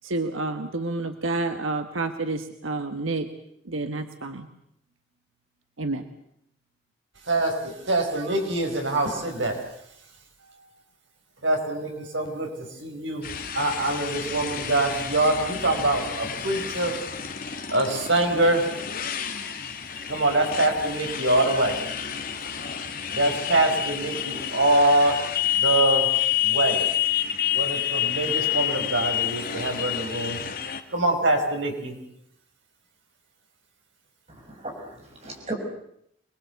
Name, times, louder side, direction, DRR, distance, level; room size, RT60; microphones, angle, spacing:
voice 1, 0.0-3.3 3.6-4.5 5.8-6.0, right 2 dB, 90° right, 8 dB, 1.4 m, -29 dB
voice 2, 7.3-9.6 11.4-12.5 12.8-13.3 13.5-16.9 17.7-18.6 20.1-21.7 23.1-26.1 26.4-26.8 27.5-30.4 30.9-32.0 35.2-35.4, right 2 dB, 70° right, 4 dB, 5.3 m, -24 dB
Motorcycle, 13.2-30.8, left 10 dB, 45° left, 2.0 m, -29 dB
voice 3, 34.3-35.5, right 2 dB, 30° right, 1 dB, 6.4 m, -36 dB
26.5 x 21.0 x 8.1 m, 0.73 s
head